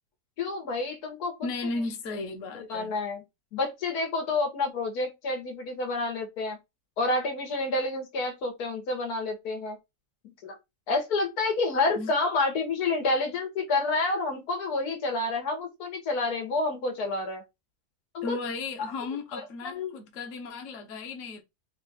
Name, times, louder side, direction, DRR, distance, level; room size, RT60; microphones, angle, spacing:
voice 1, 0.4-1.3 2.7-3.2 3.5-6.6 7.0-9.8 10.4-10.6 10.9-17.4 18.1-18.4 19.3-19.9, left 3 dB, 90° left, 1.5 m, -29 dB
voice 2, 1.4-2.9 11.9-12.1 18.2-21.4, left 3 dB, 60° left, 1.2 m, -35 dB
4.0 x 2.4 x 3.9 m
omnidirectional pair, 1.6 m